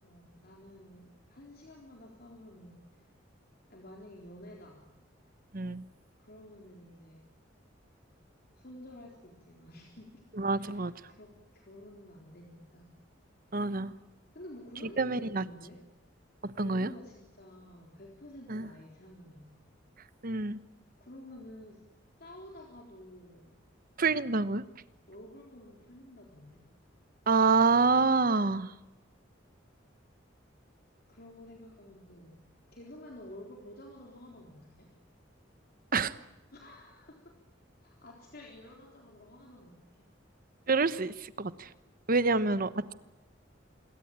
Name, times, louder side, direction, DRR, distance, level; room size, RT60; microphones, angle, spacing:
voice 1, 0.0-2.9 3.7-4.8 6.2-7.3 8.5-10.2 10.6-10.8 11.1-13.0 14.3-15.8 16.6-19.7 21.0-21.8 22.2-23.5 25.1-26.6 31.1-32.5 32.7-34.9 36.5-37.4 37.8-40.1 42.3-42.5, left 1 dB, 55° left, 0 dB, 3.9 m, -51 dB
voice 2, 5.5-5.8 10.4-10.9 13.5-13.9 15.0-15.4 16.4-16.9 18.5-18.7 20.2-20.6 24.0-24.6 27.3-28.7 35.9-36.1 40.7-41.7 42.1-42.9, right 4 dB, 50° right, 14 dB, 1.1 m, -27 dB
27.0 x 22.5 x 8.9 m, 0.99 s
head